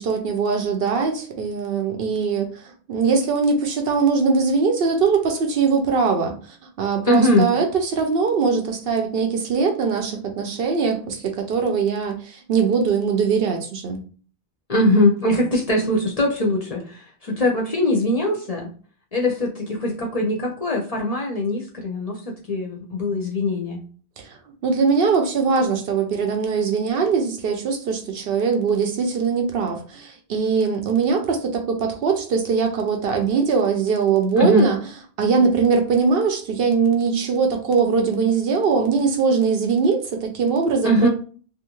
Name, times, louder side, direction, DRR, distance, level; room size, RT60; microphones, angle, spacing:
voice 1, 0.0-14.0 24.2-24.3 24.6-34.8 35.2-41.1, right 5 dB, 65° right, 3 dB, 0.7 m, -21 dB
voice 2, 7.0-7.5 14.7-18.7 19.1-22.2 22.5-23.8 34.4-34.7 40.8-41.1, left 1 dB, 45° left, -1 dB, 0.6 m, -21 dB
2.5 x 2.3 x 3.0 m, 0.41 s
omnidirectional pair, 1.1 m